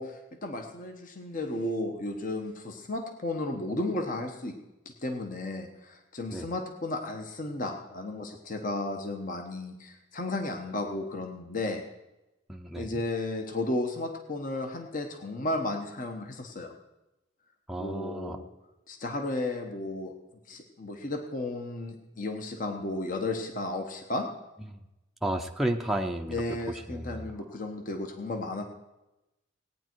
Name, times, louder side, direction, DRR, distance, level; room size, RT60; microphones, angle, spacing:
voice 1, 0.0-4.5 5.0-11.8 12.7-16.7 17.8-18.5 18.9-20.1 20.5-24.3 26.3-28.6, left 2 dB, 45° left, 4 dB, 1.1 m, -34 dB
voice 2, 12.5-13.0 17.7-18.4 24.7-24.8 25.2-27.3, right 1 dB, ahead, 1 dB, 0.6 m, -33 dB
17.5 x 9.4 x 4.6 m, 0.99 s
head